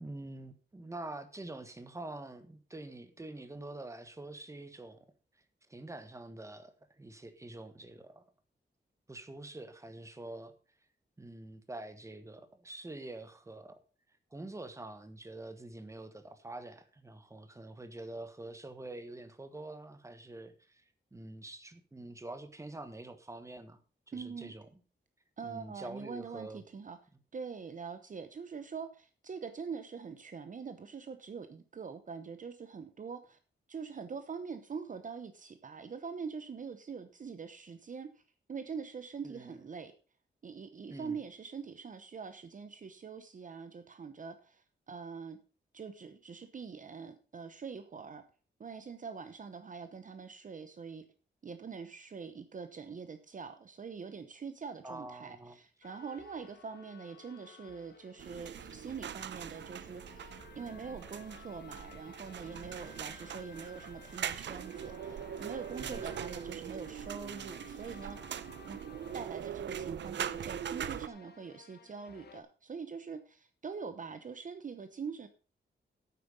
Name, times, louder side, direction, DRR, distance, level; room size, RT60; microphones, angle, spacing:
voice 1, 0.0-5.0 5.7-8.2 9.1-10.5 11.2-13.8 14.3-20.8 21.1-23.8 24.1-24.7 25.4-26.6 39.2-39.6 40.9-41.2 54.8-55.6 65.8-66.0, right 2 dB, 15° right, 9 dB, 1.4 m, -46 dB
voice 2, 24.1-24.5 25.4-27.0 27.3-33.4 33.7-38.2 38.5-39.9 40.4-45.4 45.7-48.2 48.6-51.0 51.4-68.2 68.7-68.8 69.1-75.3, right 5 dB, 45° right, 9 dB, 0.9 m, -44 dB
sound 1, 55.8-72.4, left 6 dB, 60° left, 1.2 m, -56 dB
sound 2, 58.2-71.1, right 9 dB, 80° right, 0.6 m, -41 dB
9.3 x 8.6 x 5.3 m, 0.36 s
wide cardioid pair, 130°, 19 cm